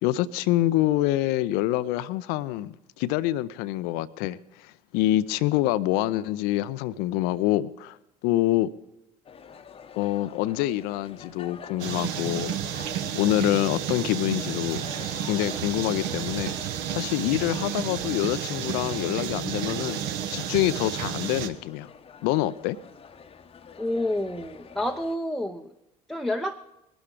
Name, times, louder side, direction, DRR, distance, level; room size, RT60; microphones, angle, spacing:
voice 1, 0.0-8.0 8.2-8.7 9.9-12.5 13.1-14.9 15.3-16.6 16.9-20.0 20.3-21.9 22.2-22.8, left 15 dB, 55° left, 16 dB, 0.5 m, -26 dB
sound 1, 9.3-25.2, left 6 dB, 30° left, 0.9 m, -46 dB
sound 2, 11.8-21.5, right 10 dB, 55° right, 1.0 m, -31 dB
voice 2, 23.8-25.7 26.1-26.6, left 1 dB, ahead, 3 dB, 0.7 m, -29 dB
21.5 x 12.0 x 3.7 m, 0.90 s
figure-of-eight pair, 60°, 20 cm